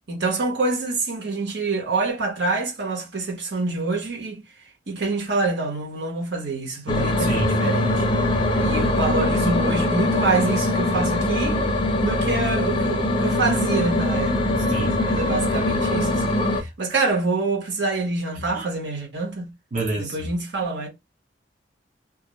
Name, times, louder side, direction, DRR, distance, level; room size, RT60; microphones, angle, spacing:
voice 1, 0.1-4.4 4.9-8.0 8.6-11.6 12.0-19.5 20.0-20.9, right 3 dB, 70° right, 1.0 m, -26 dB
sound 1, 6.9-16.6, left 1 dB, 25° left, 0.5 m, -22 dB
voice 2, 7.2-7.6 8.3-8.4 14.7-15.2 18.5-18.7 19.7-20.2, right 2 dB, 45° right, 0.7 m, -28 dB
2.4 x 2.1 x 3.0 m
head